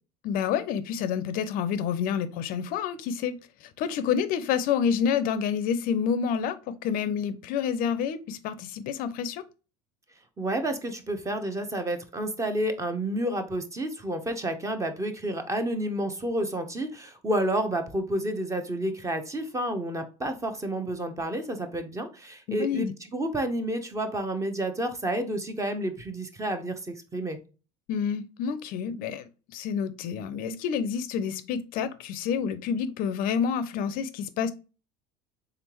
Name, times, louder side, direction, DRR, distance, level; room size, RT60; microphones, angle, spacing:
voice 1, 0.2-9.4 22.5-22.9 27.9-34.5, left 7 dB, 55° left, 0.5 m, -28 dB
voice 2, 10.4-27.4, right 1 dB, 15° right, 0.8 m, -30 dB
3.7 x 3.4 x 2.9 m
supercardioid pair, 100°, 17 cm